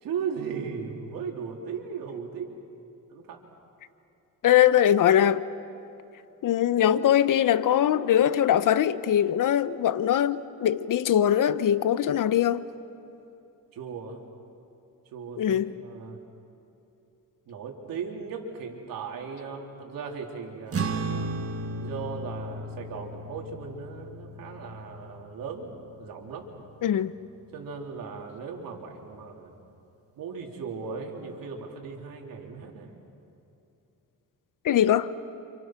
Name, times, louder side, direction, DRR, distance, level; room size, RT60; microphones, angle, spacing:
voice 1, 0.0-2.5 3.1-3.4 13.7-14.2 15.1-16.2 17.5-21.1 21.8-25.7 26.0-26.5 27.5-29.5 30.2-33.0, right 6 dB, 90° right, 3.8 m, -37 dB
voice 2, 4.4-5.4 6.4-12.7 15.4-15.7 26.8-27.1 34.6-35.1, left 10 dB, 70° left, 1.0 m, -22 dB
sound 1, 20.7-27.4, right 2 dB, 45° right, 1.6 m, -35 dB
29.5 x 28.0 x 6.1 m
cardioid pair, 105°, 33 cm